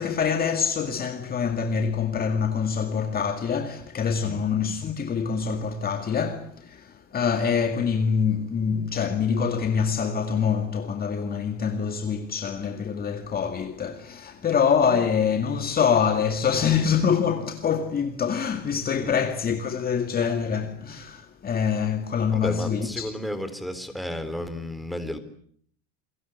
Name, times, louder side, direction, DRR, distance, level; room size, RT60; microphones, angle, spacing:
voice 1, 0.0-23.2, left 6 dB, 25° left, 2.1 m, -25 dB
voice 2, 22.3-25.2, left 1 dB, ahead, 3.8 m, -32 dB
29.0 x 22.0 x 8.2 m
supercardioid pair, 135°, 34 cm